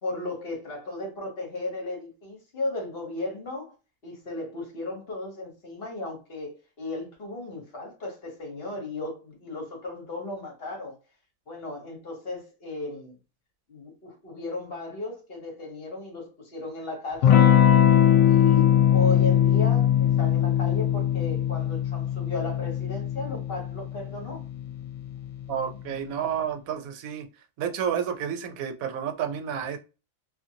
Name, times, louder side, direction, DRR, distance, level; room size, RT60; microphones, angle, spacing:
voice 1, 0.0-3.7 4.0-11.0 11.5-13.2 13.7-17.6 18.3-24.4, left 2 dB, 50° left, 1.0 m, -35 dB
Electric guitar / Strum, 17.2-25.5, left 10 dB, 75° left, 1.0 m, -21 dB
voice 2, 25.5-27.3 27.6-29.8, right 8 dB, 90° right, 1.0 m, -30 dB
2.5 x 2.5 x 2.7 m
omnidirectional pair, 1.4 m